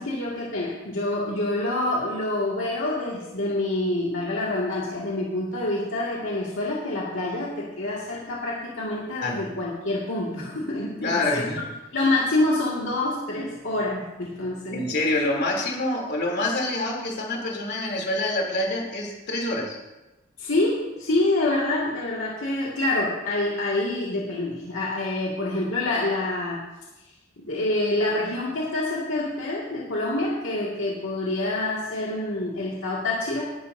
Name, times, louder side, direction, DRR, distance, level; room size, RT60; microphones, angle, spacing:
voice 1, 0.0-11.4 11.9-14.9 20.4-26.6 27.0-27.1 27.4-33.4, left 2 dB, 70° left, -5 dB, 2.2 m, -27 dB
voice 2, 9.2-9.5 11.0-11.6 14.7-19.8, left 2 dB, 55° left, -1 dB, 3.3 m, -26 dB
19.5 x 12.0 x 2.7 m, 1.0 s
head